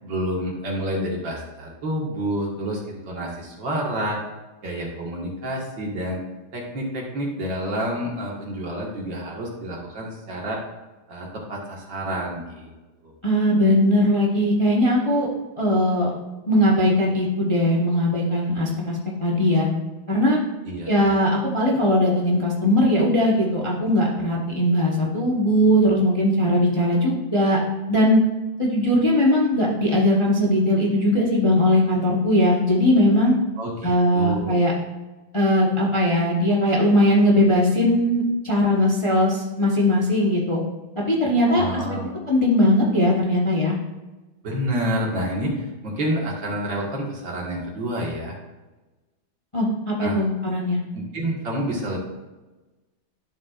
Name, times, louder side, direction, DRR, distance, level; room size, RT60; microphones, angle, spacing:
voice 1, 0.0-4.2 4.6-6.2 6.5-10.6 11.1-12.7 13.0-13.1 20.6-21.1 33.6-34.6 41.5-42.1 44.4-48.4 50.0-50.2 50.9-52.0, equal, 65° right, -2 dB, 2.5 m, -29 dB
voice 2, 13.2-15.3 15.6-16.1 16.5-19.7 20.1-20.4 20.9-27.6 27.9-28.2 28.6-33.3 33.8-34.7 35.3-40.6 41.1-41.6 41.9-42.0 42.3-43.8 49.5-50.8, left 1 dB, 20° left, -3 dB, 1.0 m, -19 dB
12.0 x 7.3 x 2.5 m, 1.1 s
omnidirectional pair, 2.2 m